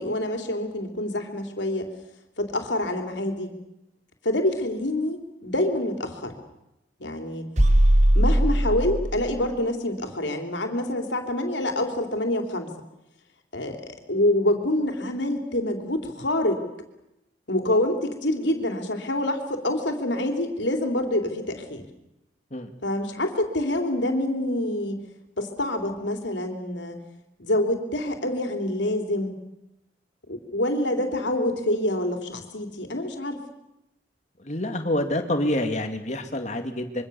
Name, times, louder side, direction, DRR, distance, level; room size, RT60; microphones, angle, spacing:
voice 1, 0.0-1.9 2.4-3.5 4.2-6.4 7.0-7.5 8.1-12.7 13.5-13.8 14.1-16.6 17.5-21.8 22.8-25.0 25.4-27.0 27.4-29.4 30.3-33.4, left 1 dB, 80° left, 5 dB, 3.3 m, -26 dB
sound 1, 7.6-9.4, right 1 dB, 40° right, 1.9 m, -19 dB
voice 2, 34.4-37.0, left 1 dB, 40° left, 6 dB, 2.3 m, -27 dB
26.0 x 24.0 x 7.0 m, 0.88 s
head